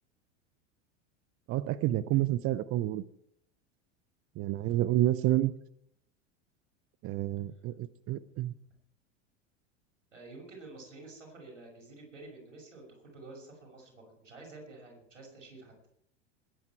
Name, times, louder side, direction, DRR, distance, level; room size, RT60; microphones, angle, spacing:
voice 1, 1.5-3.0 4.4-5.5 7.0-8.5, right 14 dB, 40° right, 16 dB, 0.7 m, -29 dB
voice 2, 10.1-15.7, right 2 dB, 90° right, 1 dB, 6.1 m, -50 dB
21.0 x 9.6 x 4.6 m, 0.72 s
hypercardioid pair, 85°, 37 cm